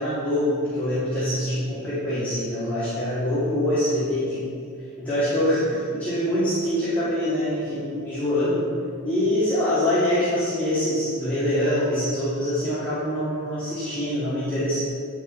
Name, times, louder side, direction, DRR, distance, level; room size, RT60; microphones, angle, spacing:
voice 1, 0.0-4.5 5.0-8.6 9.0-14.8, left 1 dB, 10° left, -13 dB, 2.1 m, -24 dB
9.7 x 5.4 x 4.4 m, 2.3 s
head